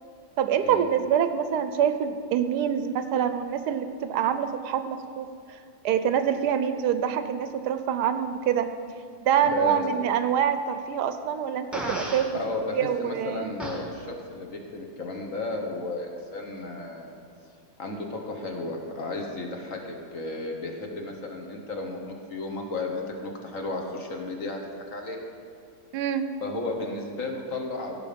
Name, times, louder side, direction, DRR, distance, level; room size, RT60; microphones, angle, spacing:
voice 1, 0.4-5.3 5.8-8.7 9.2-12.3 12.7-13.5 25.9-26.3, right 8 dB, 80° right, 10 dB, 1.2 m, -25 dB
voice 2, 9.4-9.8 12.3-17.2 17.8-24.6 24.9-25.2 26.4-28.0, left 2 dB, 55° left, 2 dB, 1.5 m, -33 dB
Fart, 11.7-12.3 13.6-13.8, equal, ahead, 1.3 m, -32 dB
16.5 x 5.6 x 5.1 m, 2.3 s
omnidirectional pair, 1.8 m